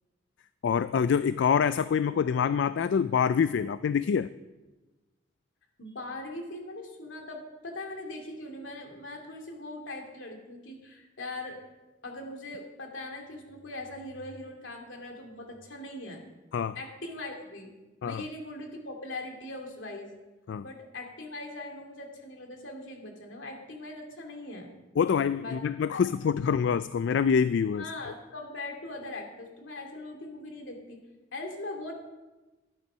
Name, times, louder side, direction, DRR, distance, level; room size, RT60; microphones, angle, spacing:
voice 1, 0.6-4.3 16.5-16.8 18.0-18.2 20.5-20.6 25.0-27.9, left 7 dB, 65° left, 14 dB, 0.3 m, -26 dB
voice 2, 5.8-11.6 12.0-16.2 16.7-17.7 18.0-20.1 20.6-24.7 25.4-25.6 25.9-26.0 27.8-31.0 31.3-31.9, left 2 dB, 85° left, 2 dB, 2.4 m, -40 dB
13.0 x 8.9 x 5.6 m, 1.1 s
head